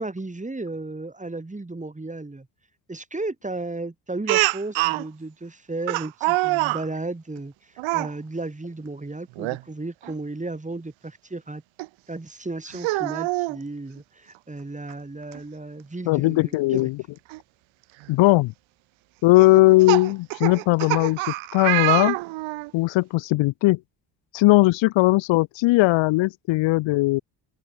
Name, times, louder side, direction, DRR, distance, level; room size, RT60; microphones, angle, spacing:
voice 1, 0.0-2.5 2.9-11.6 12.1-16.9, right 2 dB, 15° right, 4.8 m, -34 dB
Speech, 4.3-5.0 5.9-6.8 7.8-8.1 9.4-9.6 10.0-10.1 11.8-11.9 12.7-13.6 14.9-15.0 15.3-15.4 17.3-17.4 18.0-18.3 19.4-22.7, right 21 dB, 80° right, 1.4 m, -25 dB
voice 2, 16.1-17.0 18.1-18.5 19.2-21.2 21.5-22.2 22.7-23.8 24.3-27.2, left 20 dB, 75° left, 0.8 m, -19 dB
open air
supercardioid pair, 70°, 46 cm